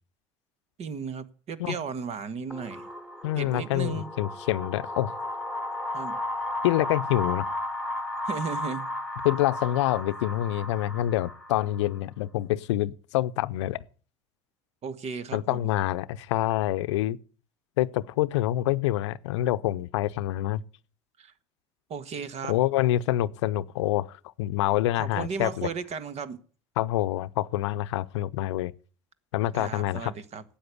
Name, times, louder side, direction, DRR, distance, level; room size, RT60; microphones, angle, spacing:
voice 1, 0.8-2.9 3.4-4.1 5.9-6.2 8.3-8.9 14.8-15.6 21.2-21.3 21.9-22.5 25.0-26.4 29.5-30.4, right 6 dB, 45° right, 1.5 m, -35 dB
sound 1, 2.5-12.0, left 2 dB, ahead, 1.9 m, -34 dB
voice 2, 3.2-5.1 6.6-7.5 9.2-13.8 15.3-17.2 17.8-20.6 22.5-25.7 26.8-28.7 29.3-30.1, left 14 dB, 80° left, 0.6 m, -26 dB
12.5 x 8.7 x 8.3 m
hypercardioid pair, 75°, 15 cm